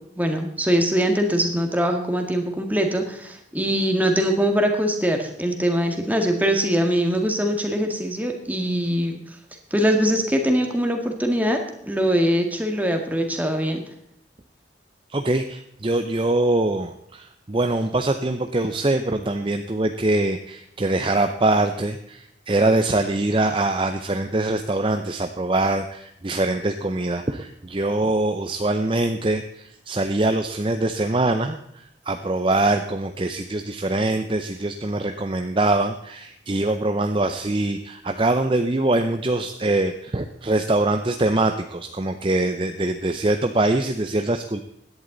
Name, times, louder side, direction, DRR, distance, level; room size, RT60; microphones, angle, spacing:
voice 1, 0.2-9.2 9.7-13.8, equal, 10° right, 3 dB, 1.8 m, -22 dB
voice 2, 15.1-44.6, right 2 dB, 30° right, 7 dB, 0.6 m, -23 dB
16.5 x 11.0 x 4.0 m, 0.76 s
head